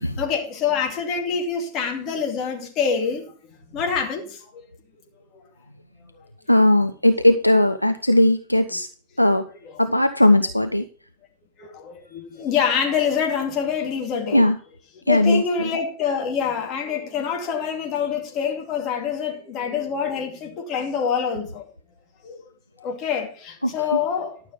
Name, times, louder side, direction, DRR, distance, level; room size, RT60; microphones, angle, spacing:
voice 1, 0.2-3.3 3.7-4.7 5.3-5.4 11.6-14.5 15.1-21.6 22.2-22.4 22.8-24.5, left 7 dB, 35° left, 2.5 m, -26 dB
voice 2, 6.5-8.9 9.2-9.5 9.8-10.9 14.3-14.6 15.1-15.7 23.6-24.0, left 1 dB, 90° left, 0.5 m, -18 dB
13.0 x 6.7 x 5.3 m
figure-of-eight pair, 90°, 0 cm